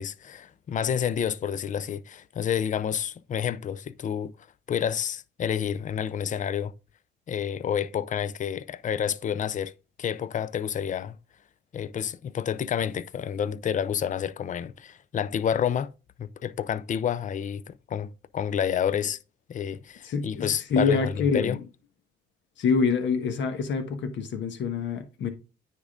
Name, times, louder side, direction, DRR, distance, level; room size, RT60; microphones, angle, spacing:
voice 1, 0.0-4.3 4.7-6.7 7.3-9.7 10.0-11.2 11.7-15.9 16.2-19.2 19.5-21.1 21.3-21.6, left 8 dB, 40° left, 0.5 m, -29 dB
voice 2, 20.0-21.6 22.6-25.3, left 5 dB, 65° left, 1.3 m, -26 dB
9.5 x 3.7 x 3.6 m
cardioid pair, 85°, 20 cm